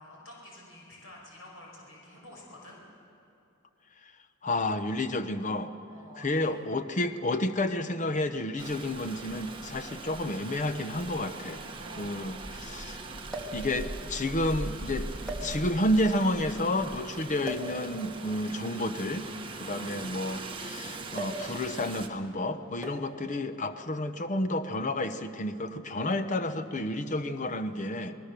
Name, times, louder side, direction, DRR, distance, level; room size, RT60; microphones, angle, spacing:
voice 1, 0.0-2.8 5.9-6.6 11.8-12.2 19.6-19.9, left 1 dB, 80° left, -2 dB, 5.5 m, -49 dB
voice 2, 4.4-5.7 6.2-11.6 12.0-13.0 13.5-15.1 15.4-19.3 19.6-28.2, left 1 dB, 35° left, 9 dB, 0.9 m, -30 dB
Rain, 8.6-22.1, right 2 dB, 25° right, 1.4 m, -40 dB
sound 1, 13.3-13.7 14.5-14.7 15.2-15.9 17.4-17.8 18.9-20.5 21.1-21.5 21.8-22.1 22.8-23.2 24.2-24.4, right 2 dB, 5° left, 2.4 m, -39 dB
26.0 x 19.5 x 6.8 m, 2.8 s
head